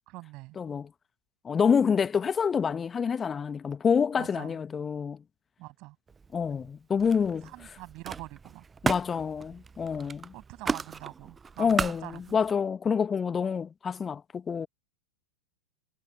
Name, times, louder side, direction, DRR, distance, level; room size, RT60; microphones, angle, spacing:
voice 1, 0.1-0.6 4.1-4.6 5.6-6.0 7.4-8.6 10.3-12.4, right 22 dB, 40° right, 7.7 m, -44 dB
voice 2, 0.6-0.9 1.4-5.2 6.3-7.5 8.8-10.3 11.6-14.7, left 6 dB, 20° left, 1.5 m, -27 dB
Camera, 6.1-6.7 7.0-12.5, right 5 dB, 15° right, 0.5 m, -36 dB
figure-of-eight pair, 90°, 0 cm